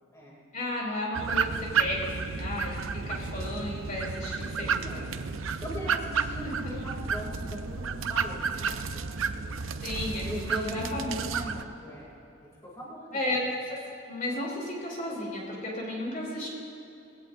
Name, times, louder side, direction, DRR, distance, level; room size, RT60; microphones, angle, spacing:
voice 1, 0.5-5.0 9.8-11.1 13.1-13.8 14.1-16.5, left 1 dB, 45° left, -3 dB, 3.2 m, -33 dB
sound 1, 1.1-11.6, right 5 dB, 85° right, 0.6 m, -32 dB
voice 2, 2.4-2.8 4.7-5.1 5.4-9.5 10.2-12.1 12.6-13.2, right 1 dB, 15° left, -5 dB, 2.7 m, -40 dB
19.5 x 17.0 x 2.7 m, 2.9 s
head